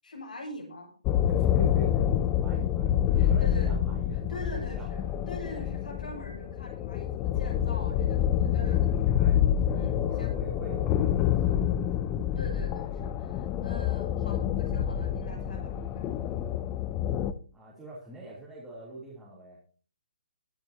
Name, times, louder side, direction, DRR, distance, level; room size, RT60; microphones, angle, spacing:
voice 1, 0.0-0.9 2.5-2.7 3.1-3.8 4.1-9.2 9.7-10.3 12.3-16.1, left 1 dB, 85° left, 0 dB, 6.9 m, -43 dB
sound 1, 1.0-17.3, left 10 dB, 20° left, 0.6 m, -27 dB
voice 2, 1.3-2.1 2.4-5.1 9.2-12.1 13.5-13.9 17.5-19.6, right 2 dB, 5° right, -9 dB, 3.3 m, -45 dB
22.0 x 9.2 x 2.9 m, 0.41 s
hypercardioid pair, 160°, 4 cm